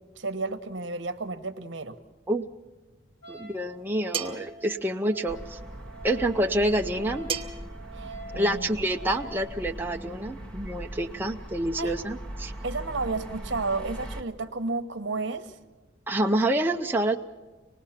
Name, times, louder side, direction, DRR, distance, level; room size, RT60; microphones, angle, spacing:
voice 1, 0.2-2.0 7.9-8.7 11.8-11.9 12.6-15.6, right 3 dB, 65° right, 8 dB, 1.1 m, -32 dB
Wind instrument woodwind instrument, 3.2-9.4, right 2 dB, 75° left, 5.8 m, -46 dB
voice 2, 3.3-5.6 6.0-7.3 8.3-12.5 16.1-17.2, right 1 dB, 10° right, 2 dB, 0.5 m, -27 dB
sound 1, 4.1-4.5 7.3-7.7, right 7 dB, 30° right, 1.1 m, -31 dB
sound 2, 5.3-14.2, right 1 dB, 5° left, 1.1 m, -40 dB
25.5 x 19.5 x 5.8 m, 1.3 s
head